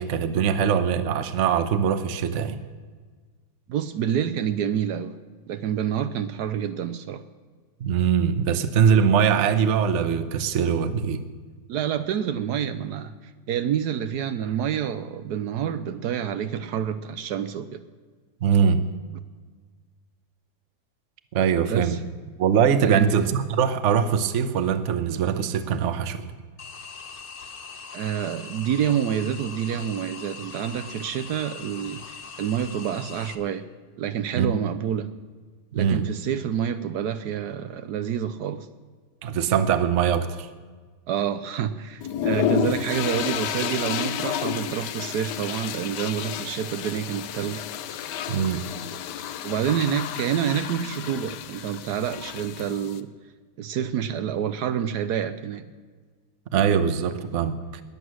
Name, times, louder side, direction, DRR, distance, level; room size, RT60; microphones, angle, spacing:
voice 1, 0.0-2.6 7.8-11.2 18.4-18.9 21.3-22.0 22.4-26.3 34.3-34.5 35.7-36.0 39.2-40.5 48.3-48.7 56.5-57.8, right 7 dB, 50° right, 11 dB, 1.0 m, -22 dB
voice 2, 3.7-5.2 5.5-7.2 11.7-17.8 21.7-22.0 22.8-23.1 27.9-33.7 34.0-35.1 35.7-38.7 41.1-47.6 49.4-53.1 53.6-55.7, right 9 dB, 75° right, 11 dB, 1.2 m, -28 dB
sound 1, 26.6-33.3, left 5 dB, 40° left, 0.9 m, -41 dB
sound 2, 42.0-53.0, left 9 dB, 85° left, 1.3 m, -31 dB
21.0 x 8.2 x 6.3 m, 1.5 s
omnidirectional pair, 1.8 m